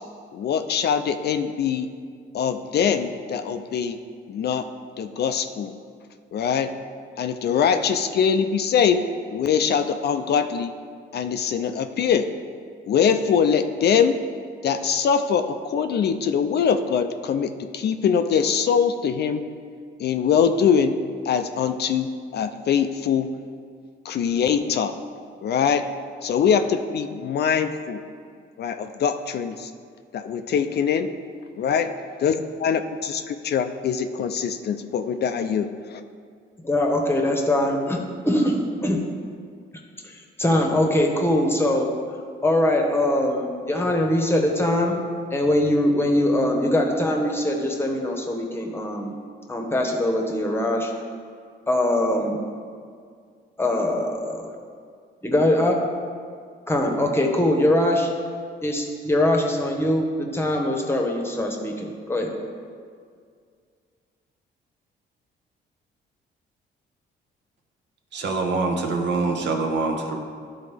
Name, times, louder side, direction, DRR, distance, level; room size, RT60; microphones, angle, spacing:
voice 1, 0.3-1.9 2.3-4.0 4.3-4.6 5.0-5.7 6.3-6.7 7.2-9.0 9.3-10.7 11.1-12.2 12.9-14.1 14.6-19.4 20.0-20.9 21.2-22.1 22.3-23.3 24.1-24.9 25.4-25.8 26.2-28.0 28.6-29.7 30.1-31.1 31.6-31.9 32.2-36.0, left 7 dB, 55° left, 8 dB, 0.4 m, -23 dB
voice 2, 36.6-39.0 40.0-41.9 42.4-45.0 45.3-49.1 49.5-50.9 51.7-52.4 53.6-54.5 55.2-55.8 56.7-58.1 58.6-62.3, left 1 dB, 10° left, 1 dB, 1.0 m, -22 dB
voice 3, 68.1-70.2, right 3 dB, 60° right, 3 dB, 1.0 m, -24 dB
11.5 x 4.0 x 3.4 m, 2.1 s
cardioid pair, 90°, 20 cm